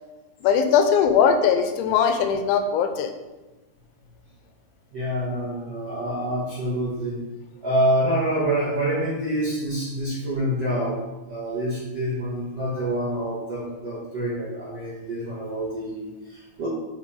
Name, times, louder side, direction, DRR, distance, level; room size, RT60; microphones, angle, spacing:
voice 1, 0.4-3.1, left 7 dB, 90° left, 7 dB, 2.9 m, -20 dB
voice 2, 4.9-7.2 7.6-11.0 11.2-16.7, right 1 dB, 70° right, -10 dB, 1.5 m, -26 dB
7.4 x 4.1 x 3.6 m, 1.1 s
omnidirectional pair, 5.2 m